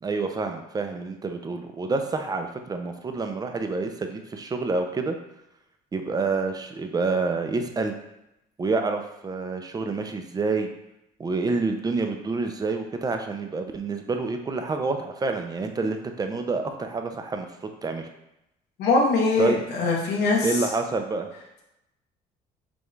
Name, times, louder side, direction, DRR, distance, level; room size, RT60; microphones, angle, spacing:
voice 1, 0.0-5.2 5.9-7.9 8.6-10.7 11.2-17.5 17.8-18.1 19.4-19.6 20.4-21.3, right 3 dB, 25° right, 5 dB, 0.5 m, -28 dB
voice 2, 18.8-20.7, left 3 dB, 80° left, -1 dB, 0.9 m, -22 dB
5.2 x 2.4 x 3.2 m, 0.86 s
cardioid pair, 110°, 17 cm